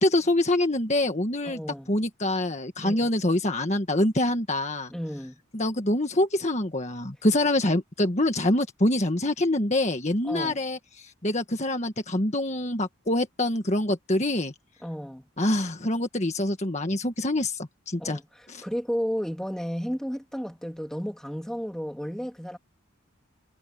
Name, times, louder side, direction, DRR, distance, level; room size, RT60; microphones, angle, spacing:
voice 1, 0.0-1.6 1.9-4.9 5.5-14.5 15.4-18.2 18.5-18.6, left 1 dB, 35° left, 1.6 m, -25 dB
voice 2, 1.4-1.9 2.8-3.1 4.9-5.4 10.2-10.6 14.8-15.3 18.0-22.6, equal, 5° left, 2.5 m, -33 dB
head